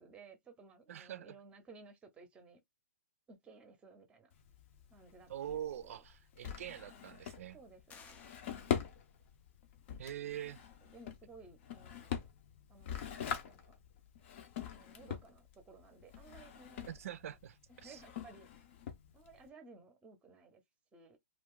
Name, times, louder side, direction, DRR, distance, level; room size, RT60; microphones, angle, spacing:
voice 1, 0.0-2.6 3.3-4.3 4.9-6.0 6.9-7.2 7.5-8.9 10.2-12.3 12.7-13.8 14.7-16.9 17.3-17.4 17.7-18.5 19.1-20.6 20.9-21.2, right 3 dB, 15° right, 0.7 m, -58 dB
voice 2, 0.9-1.3 5.3-7.6 10.0-10.7 16.9-18.0, right 11 dB, 65° right, 0.4 m, -44 dB
Drawer open or close, 4.3-19.5, left 8 dB, 50° left, 0.7 m, -44 dB
sound 1, 7.9-9.3, left 6 dB, 15° left, 0.4 m, -59 dB
2.5 x 2.3 x 3.7 m
hypercardioid pair, 140°, 8 cm